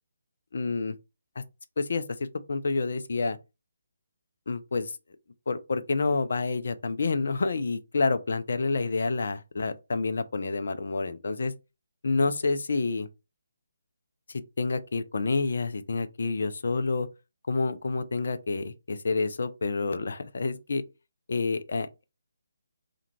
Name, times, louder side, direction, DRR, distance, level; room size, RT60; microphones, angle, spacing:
voice 1, 0.5-0.9 1.8-3.4 4.5-4.9 5.5-11.5 12.0-13.1 14.6-17.1 17.5-20.8 21.3-22.0, left 3 dB, 55° left, 0.3 m, -28 dB
2.4 x 2.2 x 3.0 m
figure-of-eight pair, 145°, 0 cm